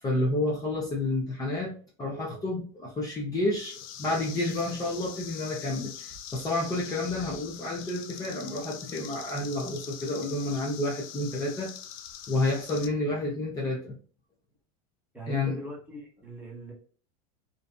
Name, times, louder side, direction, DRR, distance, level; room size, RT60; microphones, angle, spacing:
voice 1, 0.0-1.7 2.0-11.7 12.3-13.9 15.3-15.6, left 2 dB, 20° left, -4 dB, 0.6 m, -30 dB
sound 1, 3.6-12.9, left 9 dB, 60° left, 0.4 m, -43 dB
voice 2, 15.1-16.7, equal, 10° right, -3 dB, 1.0 m, -41 dB
2.6 x 2.4 x 2.2 m, 0.41 s
supercardioid pair, 120°, 19 cm